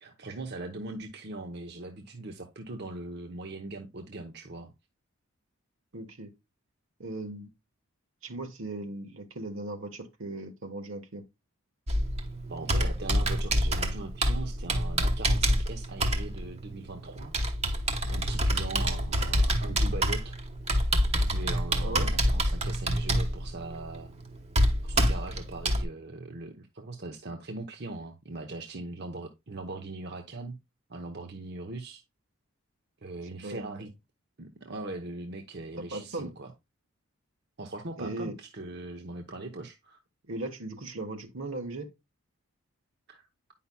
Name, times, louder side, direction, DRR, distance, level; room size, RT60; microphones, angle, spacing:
voice 1, 0.0-4.7 12.5-17.3 18.0-20.4 21.2-24.1 24.8-30.6 30.9-32.0 33.0-33.9 34.4-36.5 37.6-40.0 43.1-43.3, right 2 dB, 50° right, 0.8 m, -40 dB
voice 2, 5.9-6.3 7.0-7.5 8.2-11.2 21.8-22.1 33.3-33.8 35.8-36.3 38.0-38.3 40.3-41.9, right 2 dB, 65° right, 1.2 m, -38 dB
Computer keyboard, 11.9-25.8, equal, 30° right, 1.1 m, -27 dB
9.5 x 5.6 x 2.2 m
head